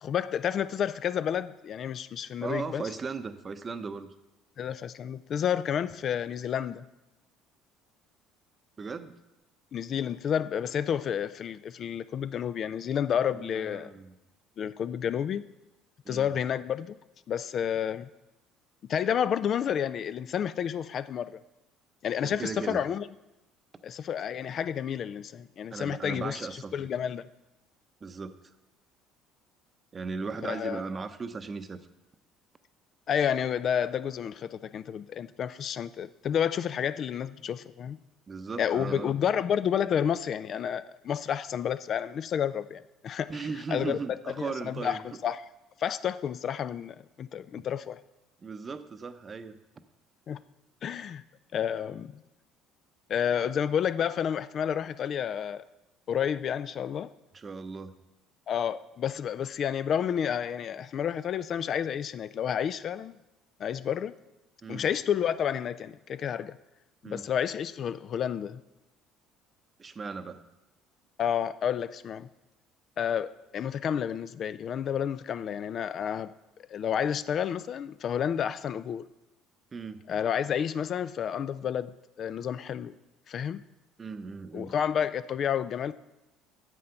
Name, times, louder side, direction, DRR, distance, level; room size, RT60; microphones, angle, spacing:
voice 1, 0.0-2.8 4.6-6.8 9.7-13.9 14.6-15.4 16.1-17.0 17.3-18.1 18.9-21.3 22.0-23.1 23.8-26.4 26.7-27.3 30.4-30.8 33.1-38.0 38.6-43.3 43.7-45.4 45.8-48.0 50.3-50.4 50.8-51.2 51.5-52.2 53.1-55.6 56.1-57.1 58.5-63.2 63.6-64.1 64.7-66.6 67.0-68.6 71.2-72.3 73.0-76.3 76.7-79.0 80.1-81.9 82.2-82.9 83.3-83.6 84.5-85.9, left 8 dB, 50° left, 15 dB, 0.3 m, -30 dB
voice 2, 2.4-4.1 8.8-9.1 13.3-14.2 16.0-16.4 22.2-22.8 25.7-26.7 28.0-28.5 29.9-31.8 38.3-39.1 43.3-45.0 48.4-49.6 57.3-57.9 64.6-64.8 67.0-67.2 69.8-70.4 79.7-80.0 84.0-84.7, right 4 dB, 30° right, 11 dB, 0.7 m, -37 dB
7.6 x 7.6 x 5.7 m, 0.98 s
supercardioid pair, 75°, 0 cm